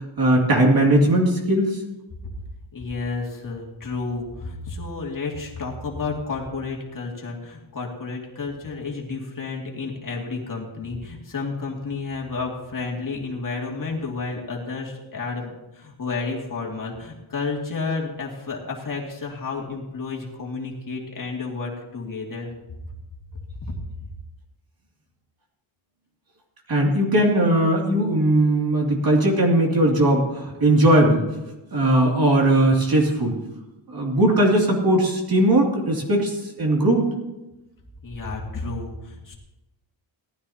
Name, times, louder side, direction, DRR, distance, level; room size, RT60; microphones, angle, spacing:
voice 1, 0.2-1.8 26.7-31.2 31.7-33.4 33.9-37.1, right 1 dB, 45° right, 0 dB, 2.7 m, -19 dB
voice 2, 2.7-22.5 23.6-23.7 38.0-39.3, left 4 dB, 40° left, -2 dB, 2.5 m, -31 dB
18.0 x 13.0 x 2.9 m, 0.99 s
wide cardioid pair, 150°, 50 cm